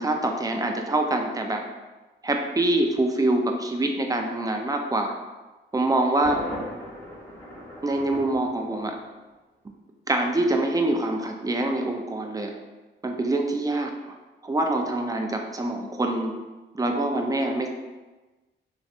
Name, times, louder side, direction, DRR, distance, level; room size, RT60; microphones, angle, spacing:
voice 1, 0.0-1.6 2.2-5.1 5.7-6.5 7.8-9.0 10.1-12.5 13.0-13.9 14.4-16.3 16.7-17.7, right 2 dB, 15° right, 3 dB, 0.4 m, -25 dB
Thunder, 6.2-9.2, left 1 dB, 10° left, 1.3 m, -39 dB
3.0 x 2.6 x 2.5 m, 1.2 s
cardioid pair, 60°, 21 cm